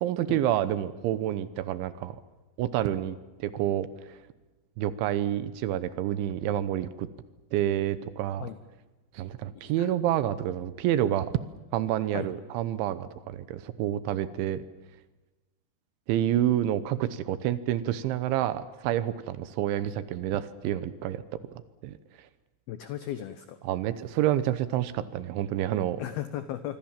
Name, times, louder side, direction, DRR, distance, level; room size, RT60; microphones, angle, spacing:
voice 1, 0.0-2.2 2.6-4.2 4.8-7.1 7.5-8.5 9.1-11.3 11.7-14.6 16.1-21.2 21.8-22.0 23.6-26.0, right 12 dB, 75° right, 14 dB, 3.1 m, -28 dB
voice 2, 22.7-23.6 26.0-26.8, left 12 dB, 85° left, 11 dB, 2.1 m, -36 dB
25.0 x 24.5 x 7.4 m, 1.1 s
omnidirectional pair, 5.9 m